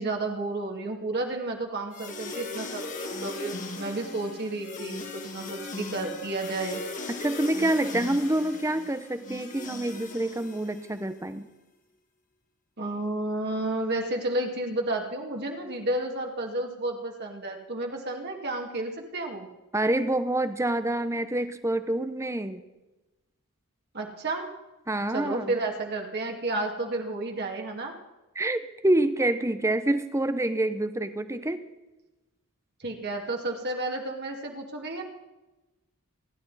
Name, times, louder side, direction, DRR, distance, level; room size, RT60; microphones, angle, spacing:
voice 1, 0.0-6.8 12.8-19.5 23.9-24.5 25.1-28.0 32.8-35.0, right 2 dB, 50° right, 1 dB, 2.2 m, -31 dB
sound 1, 1.9-11.0, left 3 dB, 35° left, 1.8 m, -38 dB
voice 2, 7.1-11.5 19.7-22.6 24.9-25.6 28.4-31.6, right 1 dB, 15° right, 11 dB, 0.8 m, -27 dB
27.5 x 11.5 x 4.1 m, 1.0 s
head